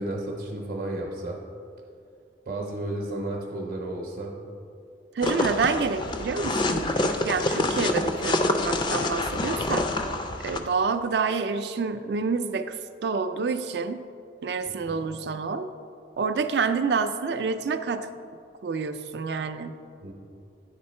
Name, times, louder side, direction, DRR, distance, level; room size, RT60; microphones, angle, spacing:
voice 1, 0.0-1.4 2.5-4.4 14.9-15.0 20.0-20.1, right 1 dB, 50° right, 0 dB, 0.8 m, -32 dB
sound 1, 5.2-10.6, left 2 dB, 25° left, 0.3 m, -27 dB
voice 2, 5.2-9.9 10.4-12.7 13.0-14.1 14.4-15.7 16.2-18.1 18.6-19.7, right 5 dB, 70° right, 10 dB, 0.4 m, -28 dB
9.6 x 3.6 x 4.3 m, 2.3 s
head